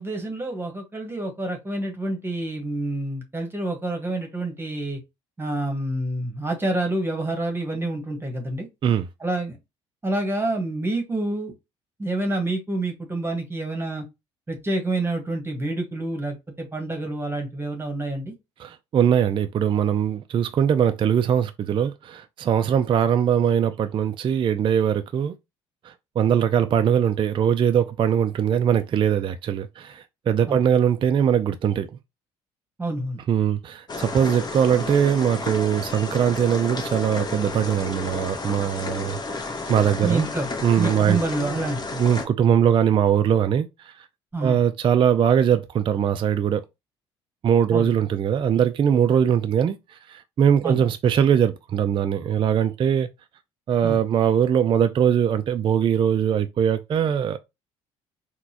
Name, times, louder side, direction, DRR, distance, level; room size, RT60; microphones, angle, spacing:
voice 1, 0.0-5.0 5.4-8.7 9.2-9.6 10.0-11.5 12.0-14.0 14.5-18.3 30.5-30.6 32.8-33.2 40.0-40.5 40.8-41.8 44.3-44.6 47.7-47.9 50.6-50.8 53.8-54.0, right 2 dB, 15° right, 1.2 m, -28 dB
voice 2, 18.6-25.3 26.2-31.9 33.3-40.3 40.6-41.6 42.0-43.7 44.4-46.6 47.4-49.8 50.1-53.1 53.7-57.4, right 8 dB, 35° right, 0.4 m, -21 dB
sound 1, 33.9-42.3, left 3 dB, 30° left, 0.8 m, -32 dB
3.9 x 2.2 x 2.8 m
hypercardioid pair, 60°, 14 cm